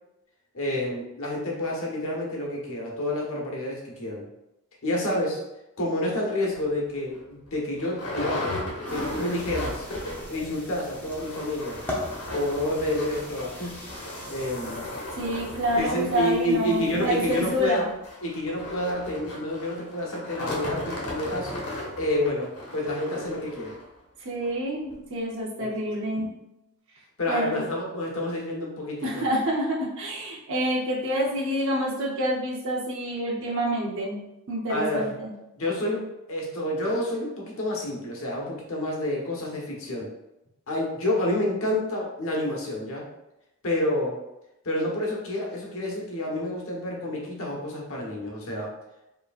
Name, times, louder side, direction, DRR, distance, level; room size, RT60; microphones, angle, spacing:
voice 1, 0.5-4.3 4.8-5.4 5.8-8.6 8.9-9.9 10.3-11.8 12.3-13.7 14.3-14.8 15.8-17.9 18.2-21.6 22.0-23.7 25.6-25.9 27.2-29.1 34.7-35.1 35.6-40.1 40.7-43.1 43.6-44.2 44.6-48.7, left 1 dB, 60° left, -2 dB, 1.1 m, -29 dB
sound 1, 6.5-6.7 7.2-7.3 7.5-10.4 10.7-10.8 11.1-23.9 24.4-24.5 24.9-25.0, left 1 dB, 85° left, 1.2 m, -36 dB
sound 2, 8.9-17.7, left 1 dB, 10° left, 0.7 m, -40 dB
voice 2, 15.1-17.9 24.2-26.3 27.3-27.6 29.0-34.2 34.5-35.3, equal, 60° right, -3 dB, 0.7 m, -27 dB
4.8 x 3.1 x 2.4 m, 0.91 s
head